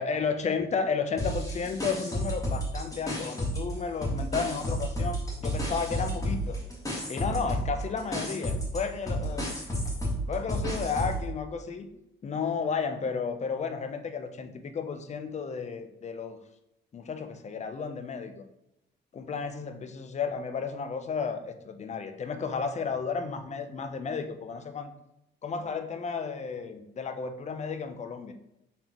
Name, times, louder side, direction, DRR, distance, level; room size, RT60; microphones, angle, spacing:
voice 1, 0.0-6.6 7.1-9.5 10.3-11.9 12.2-16.4 16.9-18.4 19.1-24.9 25.4-28.3, left 5 dB, 35° left, 8 dB, 0.5 m, -33 dB
sound 1, 1.2-3.7 4.0-11.3, equal, 15° left, 1.5 m, -31 dB
4.1 x 3.5 x 2.9 m, 0.86 s
cardioid pair, 90°, 20 cm